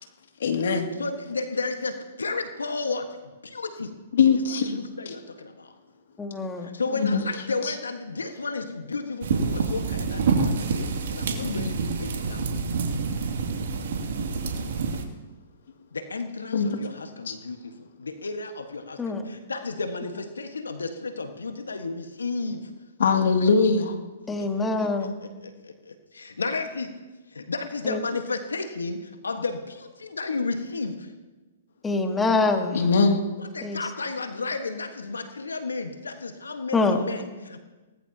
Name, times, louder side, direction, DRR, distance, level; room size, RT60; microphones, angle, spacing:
voice 1, 0.4-0.9 4.1-4.7 6.9-7.2 7.6-7.7 11.4-11.7 16.5-16.7 17.3-17.4 23.0-23.9 32.7-33.2, left 5 dB, 70° left, 4 dB, 2.4 m, -21 dB
voice 2, 1.0-3.9 4.5-5.7 6.6-12.5 15.9-22.7 24.4-27.0 27.3-31.1 33.4-37.6, left 3 dB, 85° left, 6 dB, 1.5 m, -33 dB
voice 3, 6.2-6.7 19.0-19.3 24.3-25.1 27.8-28.0 31.8-32.8 33.6-33.8 36.7-37.1, left 3 dB, 10° left, 5 dB, 1.6 m, -25 dB
sound 1, 9.2-15.0, right 4 dB, 65° right, 2.4 m, -27 dB
23.5 x 19.0 x 2.9 m, 1.2 s
hypercardioid pair, 125°, 0 cm